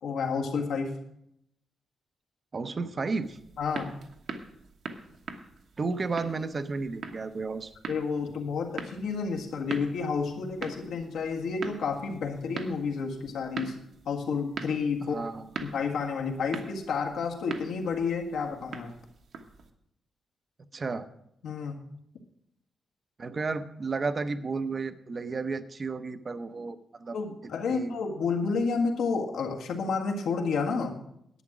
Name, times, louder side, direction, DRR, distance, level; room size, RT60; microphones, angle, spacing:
voice 1, 0.0-1.0 3.6-4.0 7.9-13.8 14.0-15.2 15.6-18.9 21.4-21.8 27.1-31.0, left 5 dB, 90° left, 1 dB, 1.7 m, -30 dB
voice 2, 2.5-3.4 5.8-7.7 15.0-15.5 20.7-21.1 23.2-27.2 27.7-28.0, right 4 dB, 30° right, 12 dB, 0.6 m, -32 dB
sound 1, 3.2-19.7, right 4 dB, 60° right, 1.1 m, -42 dB
11.0 x 8.7 x 6.0 m, 0.77 s
wide cardioid pair, 170°, 0 cm